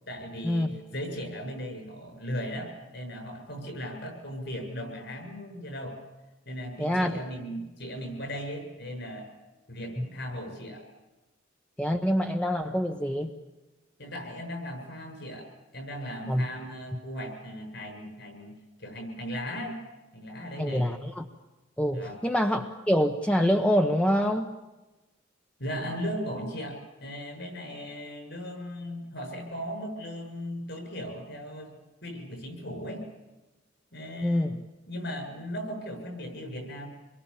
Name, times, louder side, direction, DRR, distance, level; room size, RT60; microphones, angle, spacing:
voice 1, 0.1-6.0 6.5-9.3 9.7-10.8 14.0-15.5 15.7-19.8 20.1-20.9 21.9-22.2 25.6-31.8 32.0-33.1 33.9-34.6 34.9-36.9, equal, 60° left, 4 dB, 7.4 m, -37 dB
voice 2, 6.8-7.2 10.0-10.1 11.8-13.4 16.3-16.4 20.6-21.3 21.8-24.5 34.2-34.6, equal, 5° left, 4 dB, 1.0 m, -26 dB
27.0 x 22.5 x 7.2 m, 1.1 s
head